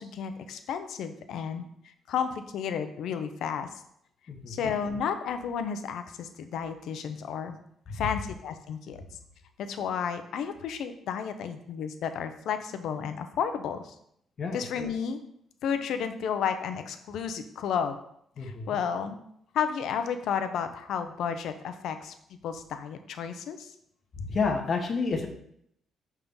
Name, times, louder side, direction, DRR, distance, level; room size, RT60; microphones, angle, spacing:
voice 1, 0.0-3.7 4.5-7.6 7.9-9.0 9.6-13.9 14.5-15.2 15.6-18.0 18.4-19.2 19.5-23.7, left 7 dB, 75° left, 9 dB, 0.6 m, -32 dB
voice 2, 4.3-4.6 14.4-14.6 18.4-18.8 24.2-25.3, left 4 dB, 45° left, 2 dB, 1.1 m, -29 dB
5.6 x 3.6 x 5.3 m, 0.72 s
cardioid pair, 90°, 0 cm